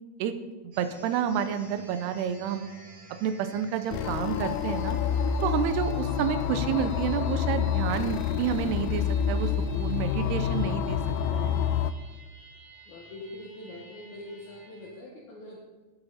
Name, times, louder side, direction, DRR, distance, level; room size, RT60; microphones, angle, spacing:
voice 1, 0.6-2.7 3.2-5.0 5.4-11.0 11.3-11.6, right 8 dB, 90° right, 9 dB, 2.8 m, -29 dB
sound 1, 0.7-14.9, right 3 dB, 65° right, 4.7 m, -52 dB
sound 2, 3.9-11.9, left 8 dB, 85° left, 2.2 m, -28 dB
voice 2, 10.0-10.5 12.9-15.6, left 2 dB, 55° left, -4 dB, 2.5 m, -43 dB
19.5 x 8.0 x 4.2 m, 1.3 s
omnidirectional pair, 4.7 m